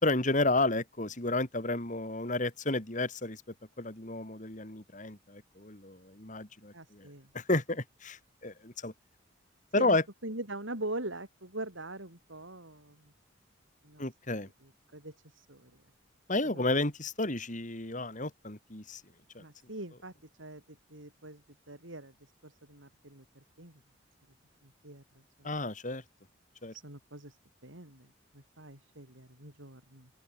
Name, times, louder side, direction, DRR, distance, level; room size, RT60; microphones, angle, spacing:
voice 1, 0.0-3.4 3.8-7.1 7.3-8.9 9.7-10.0 14.0-14.5 16.3-19.0 19.3-19.4 25.4-26.0 26.6-26.7, left 2 dB, 40° left, 3.3 m, -31 dB
voice 2, 6.7-7.3 9.7-10.0 10.2-13.1 13.8-14.1 14.6-15.8 16.4-16.6 19.4-20.1 20.4-23.8 24.6-25.5 26.7-30.1, right 2 dB, 80° right, 6.7 m, -43 dB
open air
head